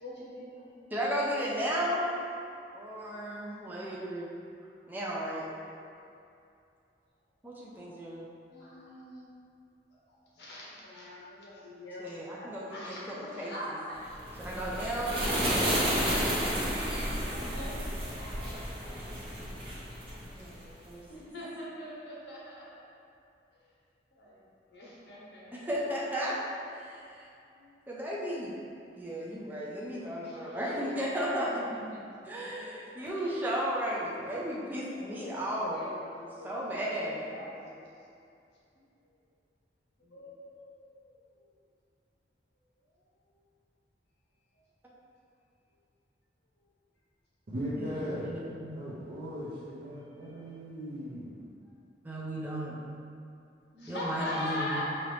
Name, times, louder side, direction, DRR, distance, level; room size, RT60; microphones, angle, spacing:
voice 1, 0.0-0.7 8.5-9.3 9.9-14.2 15.9-16.1 16.7-17.9 18.4-19.3 20.5-20.7 21.1-22.7 23.5-23.8 24.1-25.7 27.5-28.0 29.8-32.0 32.3-33.8 34.9-37.9 38.7-39.2 40.0-41.5 42.9-43.4 44.5-44.6 46.6-46.7 49.9-50.4 51.6-51.7 53.7-54.8, left 1 dB, 75° left, -5 dB, 1.0 m, -44 dB
voice 2, 0.9-2.2 2.7-4.3 4.9-5.5 7.4-8.3 12.0-13.0 13.4-13.5 14.4-16.0 20.4-21.0 25.5-26.4 26.7-27.3 27.9-28.5 29.0-31.5 32.3-35.9 36.4-37.3 47.8-48.8 52.0-52.8 53.9-54.8, equal, 10° right, -6 dB, 0.5 m, -34 dB
sound 1, 14.1-20.7, equal, 30° right, 1.2 m, -32 dB
voice 3, 47.5-48.4 48.7-51.5, equal, 55° right, -10 dB, 0.7 m, -38 dB
5.1 x 2.9 x 3.2 m, 2.6 s
head